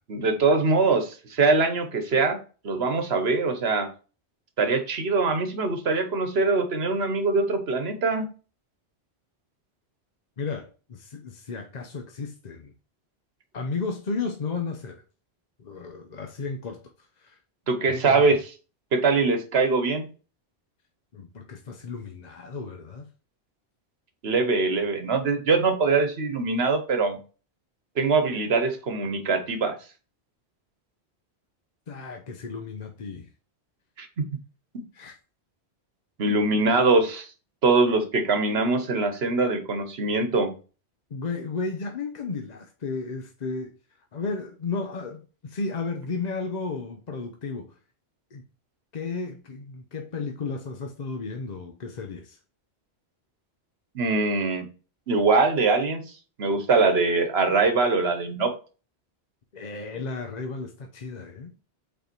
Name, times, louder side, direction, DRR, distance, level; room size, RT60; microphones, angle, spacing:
voice 1, 0.1-3.9 4.6-8.3 17.7-18.5 18.9-20.1 24.2-27.2 28.0-29.8 34.0-34.3 34.7-34.8 36.2-37.3 37.6-40.5 53.9-54.7 55.1-56.0 56.4-58.5, right 3 dB, 70° right, 1.3 m, -23 dB
voice 2, 10.4-12.7 13.5-15.0 15.6-17.4 17.9-18.3 21.1-23.1 31.9-33.3 34.9-35.2 41.1-43.7 44.1-47.8 48.3-48.4 48.9-52.4 59.5-61.6, left 4 dB, 45° left, 0.7 m, -34 dB
5.5 x 4.4 x 4.4 m
omnidirectional pair, 1.1 m